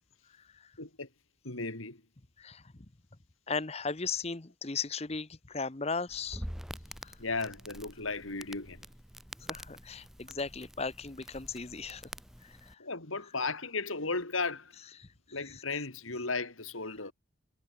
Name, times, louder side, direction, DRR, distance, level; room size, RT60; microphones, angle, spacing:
voice 1, 0.8-1.1 1.4-2.0 7.2-8.8 12.8-14.8 15.3-17.1, left 3 dB, 90° left, 3.9 m, -35 dB
voice 2, 3.5-6.4 7.0-7.1 9.5-12.0 12.4-12.7 15.0-15.1, left 4 dB, 30° left, 0.9 m, -36 dB
Crackle, 6.1-12.7, equal, ahead, 2.0 m, -46 dB
head